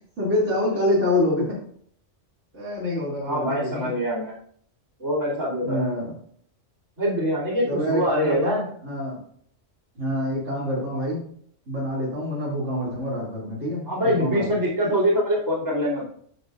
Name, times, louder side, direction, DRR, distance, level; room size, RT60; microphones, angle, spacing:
voice 1, 0.2-1.5 2.5-3.9 5.6-6.1 7.7-9.2 9.9-11.2 11.7-14.7, left 1 dB, 65° right, -7 dB, 2.9 m, -26 dB
voice 2, 3.2-4.3 5.0-5.8 7.0-8.6 13.9-16.1, equal, 90° right, -5 dB, 3.5 m, -24 dB
10.0 x 6.6 x 2.5 m, 0.62 s
omnidirectional pair, 1.3 m